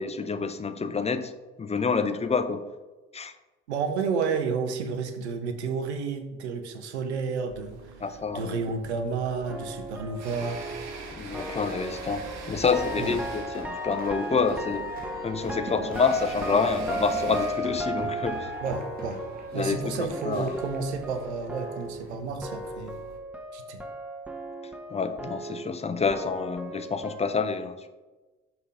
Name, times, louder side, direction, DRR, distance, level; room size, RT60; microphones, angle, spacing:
voice 1, 0.0-1.3 1.6-2.6 3.1-3.3 8.0-8.6 11.2-14.9 15.2-18.5 19.5-20.6 24.9-27.9, left 5 dB, 20° left, 10 dB, 0.6 m, -28 dB
voice 2, 3.7-7.8 8.3-10.6 13.0-13.2 18.6-19.2 19.5-23.0 23.5-23.8, right 5 dB, 85° right, 6 dB, 0.7 m, -31 dB
sound 1, 7.5-23.2, right 4 dB, 55° right, 1.4 m, -45 dB
sound 2, 9.4-22.1 22.4-27.2, equal, 5° right, 0.9 m, -36 dB
sound 3, 12.7-22.2, right 3 dB, 25° right, 1.9 m, -42 dB
5.8 x 5.4 x 3.6 m, 1.2 s
figure-of-eight pair, 50°, 33 cm